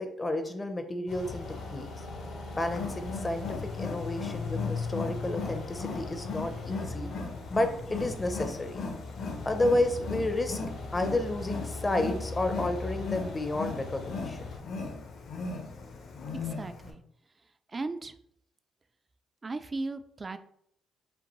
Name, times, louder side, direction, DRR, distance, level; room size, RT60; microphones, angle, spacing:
voice 1, 0.0-1.9 2.5-7.1 7.5-8.8 9.4-10.6 10.9-14.5, left 1 dB, 20° left, 7 dB, 0.5 m, -31 dB
sound 1, 1.1-14.6, left 2 dB, 80° left, 1.0 m, -41 dB
Wild animals, 2.6-16.9, left 4 dB, 65° left, 0.7 m, -37 dB
voice 2, 16.3-17.0 17.7-18.1 19.4-20.4, right 3 dB, 30° right, 11 dB, 0.3 m, -36 dB
5.2 x 2.6 x 3.0 m, 0.71 s
cardioid pair, 90°, 0 cm